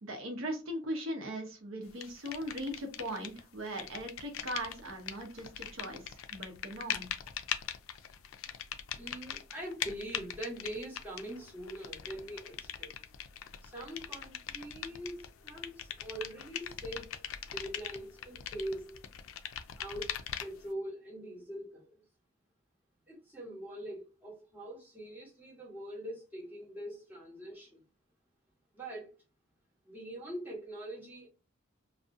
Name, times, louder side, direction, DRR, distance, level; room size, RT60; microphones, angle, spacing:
voice 1, 0.0-7.1, right 1 dB, 85° right, 3 dB, 0.7 m, -39 dB
sound 1, 2.0-3.4 3.7-20.7, left 9 dB, 85° left, 0.3 m, -41 dB
voice 2, 8.9-12.9 13.6-17.1 17.5-19.1 19.8-22.0 23.1-27.8 28.7-29.1 29.9-31.3, right 1 dB, 10° right, -5 dB, 1.0 m, -43 dB
2.4 x 2.0 x 2.5 m, 0.30 s
head